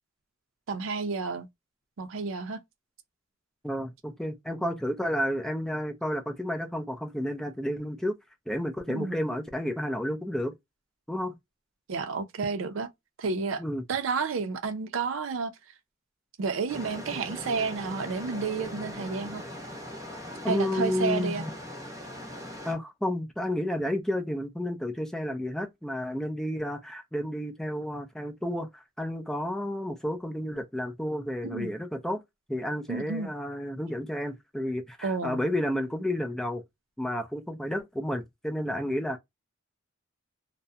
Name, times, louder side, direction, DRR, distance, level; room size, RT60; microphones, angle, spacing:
voice 1, 0.7-1.5 2.0-2.6 8.9-9.2 11.9-12.9 13.2-13.6 13.9-15.5 16.4-19.4 20.5-21.4 31.4-31.7 32.9-33.3 35.0-35.4, right 4 dB, 85° right, 0.5 m, -31 dB
voice 2, 3.6-8.2 8.5-10.5 11.1-11.3 13.6-13.8 20.4-21.5 22.6-32.2 32.5-36.6 37.0-39.2, left 1 dB, ahead, 0.4 m, -31 dB
sound 1, 16.7-22.7, left 1 dB, 15° right, 0.8 m, -40 dB
2.3 x 2.1 x 2.6 m
head